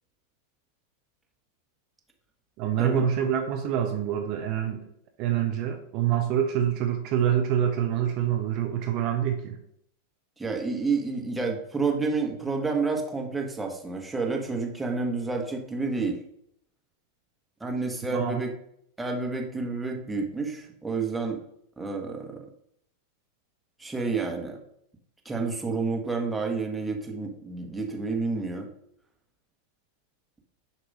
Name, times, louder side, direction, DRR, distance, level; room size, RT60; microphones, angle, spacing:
voice 1, 2.6-4.8 5.2-9.6 18.1-18.4, right 9 dB, 50° right, 5 dB, 0.7 m, -26 dB
voice 2, 10.4-16.2 17.6-18.5 19.0-21.4 21.8-22.4 23.8-24.6 25.2-28.7, right 4 dB, 10° right, 1 dB, 1.4 m, -29 dB
6.7 x 3.0 x 5.5 m, 0.71 s
hypercardioid pair, 100°, 0 cm